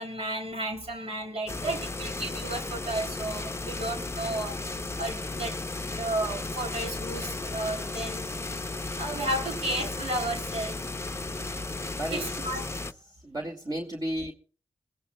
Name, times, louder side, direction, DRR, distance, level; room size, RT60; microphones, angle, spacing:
voice 1, 0.0-4.6 5.0-5.6 5.9-10.8 11.4-11.8 12.1-12.6, right 1 dB, 65° right, 3.0 m, -33 dB
sound 1, 1.5-12.9, left 2 dB, 25° left, 0.7 m, -34 dB
voice 2, 13.2-14.3, right 1 dB, 35° right, 2.1 m, -32 dB
22.5 x 16.0 x 2.2 m
cardioid pair, 50°, 11 cm